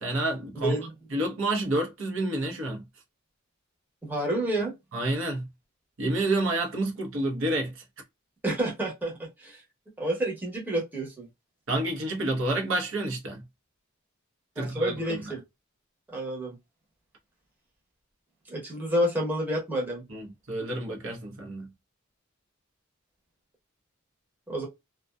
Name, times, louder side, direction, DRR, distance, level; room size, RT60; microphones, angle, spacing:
voice 1, 0.0-0.8 1.1-2.8 4.9-5.5 6.0-7.8 11.7-13.4 14.6-15.2 20.1-21.7, right 2 dB, 65° right, 0.8 m, -29 dB
voice 2, 4.0-4.7 8.4-9.6 10.0-11.3 14.6-15.4 16.1-16.6 18.5-20.0 24.5-24.7, right 1 dB, 10° right, 0.9 m, -29 dB
2.5 x 2.3 x 2.2 m
head